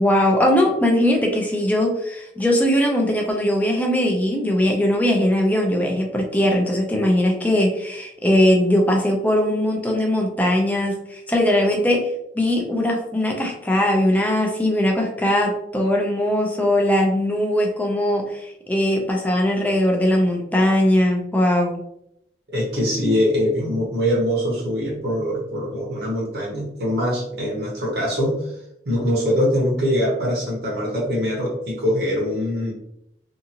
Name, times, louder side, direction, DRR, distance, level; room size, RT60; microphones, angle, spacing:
voice 1, 0.0-21.8, left 1 dB, 10° left, 1 dB, 0.4 m, -20 dB
voice 2, 22.5-28.6 28.8-32.7, equal, 60° right, -5 dB, 0.9 m, -23 dB
2.7 x 2.5 x 2.8 m, 0.79 s
head